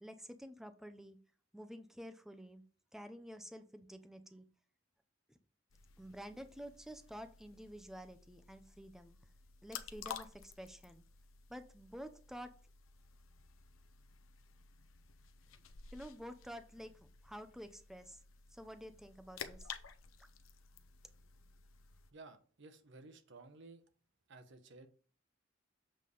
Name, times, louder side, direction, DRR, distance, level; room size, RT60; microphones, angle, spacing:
voice 1, 0.0-1.2 1.5-2.6 2.9-4.5 5.3-5.4 6.0-9.2 9.6-11.0 11.5-12.5 15.9-18.2 18.5-19.7 20.2-20.3, equal, ahead, 9 dB, 0.5 m, -50 dB
sound 1, 5.7-22.1, left 7 dB, 80° left, 0.6 m, -53 dB
voice 2, 22.1-23.8 24.3-24.9, right 3 dB, 65° right, 8 dB, 0.9 m, -55 dB
7.6 x 3.3 x 5.3 m, 0.42 s
head